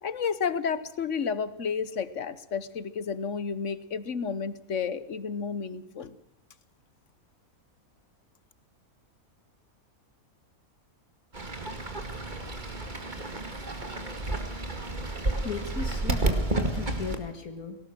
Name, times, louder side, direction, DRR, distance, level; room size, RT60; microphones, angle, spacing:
voice 1, 0.0-6.2, left 6 dB, 55° left, 16 dB, 1.4 m, -31 dB
Fowl / Bird, 11.3-17.2, right 2 dB, 30° right, 2.3 m, -31 dB
voice 2, 15.4-17.8, left 6 dB, 75° left, 7 dB, 2.2 m, -36 dB
18.5 x 18.0 x 7.7 m, 0.79 s
omnidirectional pair, 1.5 m